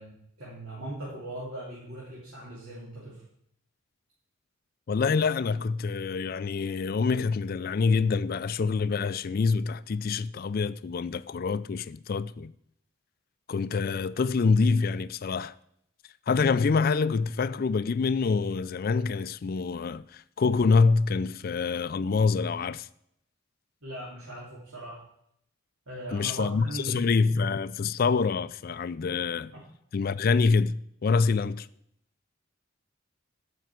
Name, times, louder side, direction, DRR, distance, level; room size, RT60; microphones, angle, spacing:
voice 1, 0.0-3.2 23.8-25.0 25.9-27.0, right 1 dB, 75° right, 3.0 m, -39 dB
voice 2, 4.9-12.5 13.5-15.5 16.3-22.9 26.1-29.5 29.9-31.7, left 4 dB, 40° left, 0.3 m, -26 dB
9.4 x 5.9 x 7.6 m
head